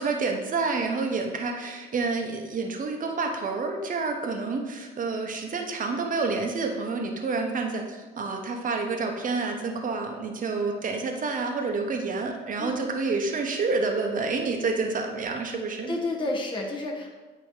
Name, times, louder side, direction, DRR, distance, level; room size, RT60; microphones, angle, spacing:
voice 1, 0.0-15.9, right 4 dB, 40° right, 2 dB, 0.9 m, -28 dB
voice 2, 12.6-13.2 15.9-17.1, left 2 dB, 25° left, -2 dB, 1.1 m, -31 dB
8.6 x 3.0 x 3.7 m, 1.3 s
cardioid pair, 90°, 20 cm